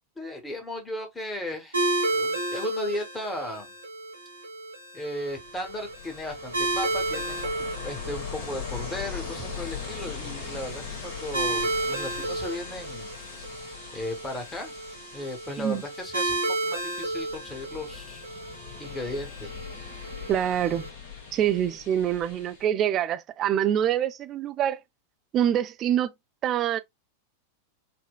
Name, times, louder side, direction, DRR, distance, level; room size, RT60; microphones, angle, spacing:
voice 1, 0.2-3.7 4.9-7.5 7.8-13.1 13.9-14.7 15.1-18.2 18.8-19.5, left 1 dB, 15° left, 1.1 m, -36 dB
sound 1, 1.7-20.9, right 2 dB, 75° right, 1.1 m, -33 dB
Ocean, 5.3-22.6, left 6 dB, 55° left, 1.2 m, -40 dB
voice 2, 20.3-20.9 21.3-24.8 25.3-26.1 26.4-26.8, right 10 dB, 30° right, 0.3 m, -25 dB
4.2 x 2.1 x 2.2 m
figure-of-eight pair, 90°, 0 cm